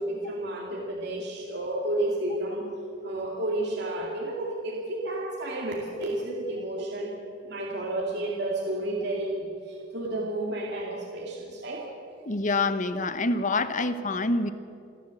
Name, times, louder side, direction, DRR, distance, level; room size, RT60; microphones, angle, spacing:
voice 1, 0.0-2.7 3.0-7.2 7.4-11.9, right 1 dB, 60° right, -2 dB, 2.5 m, -31 dB
voice 2, 12.2-14.5, left 2 dB, 40° left, 12 dB, 1.0 m, -26 dB
28.5 x 11.5 x 7.8 m, 2.6 s
head